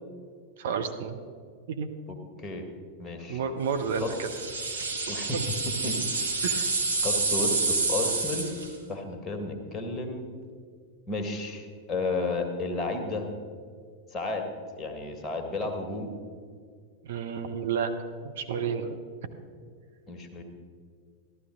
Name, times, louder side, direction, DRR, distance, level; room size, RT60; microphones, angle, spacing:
voice 1, 0.6-1.2 1.8-1.9 3.3-4.3 6.4-6.7 17.1-17.9 18.2-19.0, right 6 dB, 55° right, 6 dB, 0.8 m, -30 dB
voice 2, 2.1-2.6 3.0-3.4 4.0-4.1 5.1-5.4 5.8-5.9 6.5-6.7 7.0-8.5 8.9-10.2 11.1-13.3 14.1-14.5 14.8-16.1 20.1-20.4, left 3 dB, 20° left, 3 dB, 1.7 m, -32 dB
sound 1, 3.9-8.8, right 3 dB, 75° right, 1.5 m, -28 dB
13.5 x 12.5 x 3.8 m, 2.1 s
figure-of-eight pair, 90°, 0 cm